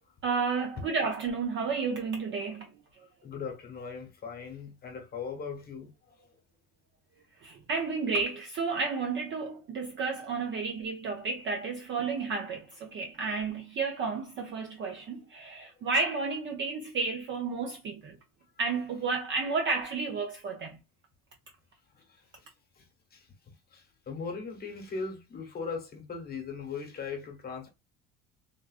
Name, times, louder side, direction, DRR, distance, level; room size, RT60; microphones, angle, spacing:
voice 1, 0.2-2.7 7.4-18.2 18.6-20.8, right 4 dB, 35° right, 0.4 m, -32 dB
voice 2, 3.0-6.3 21.9-27.7, left 5 dB, 25° left, 1.0 m, -40 dB
3.5 x 2.4 x 2.3 m
cardioid pair, 175°, 35 cm